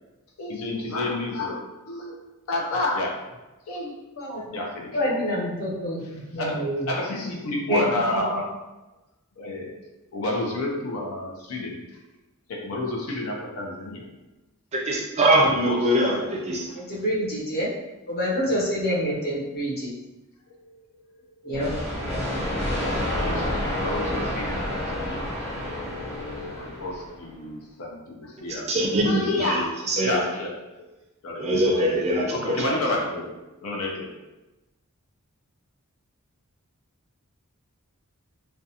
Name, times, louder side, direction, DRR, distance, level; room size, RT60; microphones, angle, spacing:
voice 1, 0.4-2.2 2.5-3.2 3.7-5.0 6.4-8.5 9.4-9.7 10.1-11.8 12.5-14.1 15.3-15.8 20.6-20.8 21.1-21.2 22.5-25.3 25.6-28.7 29.0-29.7 30.0-30.5 31.2-32.0 32.3-34.1, left 2 dB, 75° left, -1 dB, 0.5 m, -30 dB
voice 2, 4.2-4.5 4.9-7.0 7.7-8.2 16.8-17.7 18.1-19.9 21.4-21.7, equal, 45° left, -6 dB, 0.8 m, -27 dB
voice 3, 14.7-16.7 28.5-30.2 31.4-32.8, right 1 dB, 30° right, -2 dB, 0.4 m, -23 dB
sound 1, 21.5-27.2, left 1 dB, 5° left, 0.9 m, -29 dB
2.4 x 2.2 x 2.7 m, 1.1 s
head